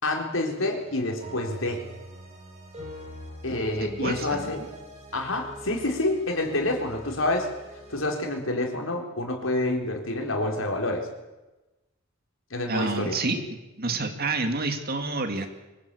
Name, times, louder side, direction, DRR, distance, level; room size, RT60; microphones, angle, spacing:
voice 1, 0.0-1.8 3.4-4.6 5.1-7.5 7.9-11.1 12.5-13.2, left 2 dB, 80° left, 2 dB, 4.1 m, -28 dB
sound 1, 0.7-8.1, right 1 dB, 35° right, 8.0 m, -43 dB
voice 2, 3.8-4.5 12.7-13.4 13.8-15.5, right 3 dB, 50° right, 6 dB, 2.5 m, -28 dB
24.5 x 17.0 x 8.4 m, 1.1 s
head